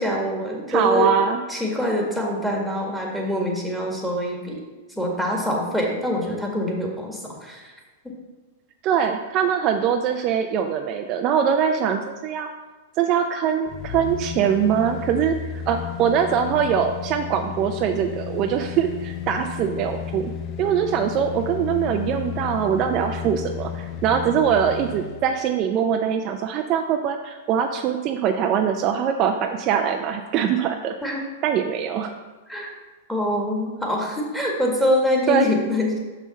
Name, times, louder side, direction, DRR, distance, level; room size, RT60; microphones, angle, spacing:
voice 1, 0.0-1.1 1.5-4.6 4.9-7.7 31.0-31.2 32.5-32.7 33.1-36.0, left 1 dB, ahead, -2 dB, 1.7 m, -24 dB
voice 2, 0.7-1.4 8.8-12.5 13.0-15.3 15.7-20.3 20.6-30.9 31.4-32.1 35.3-35.5, right 8 dB, 40° right, 5 dB, 0.5 m, -22 dB
sound 1, 13.7-25.3 25.6-25.7, left 9 dB, 40° left, 0.5 m, -33 dB
6.1 x 5.6 x 4.1 m, 1.3 s
hypercardioid pair, 110°, 0 cm